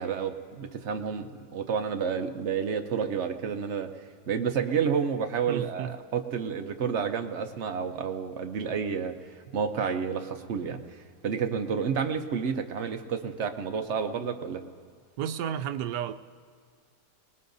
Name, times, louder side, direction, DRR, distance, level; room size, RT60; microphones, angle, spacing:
voice 1, 0.0-3.9 4.3-10.8 11.2-14.6, right 6 dB, 55° right, 6 dB, 0.9 m, -30 dB
voice 2, 5.5-6.0 15.2-16.1, right 9 dB, 85° right, 10 dB, 1.2 m, -32 dB
24.0 x 20.0 x 2.6 m, 2.1 s
omnidirectional pair, 1.7 m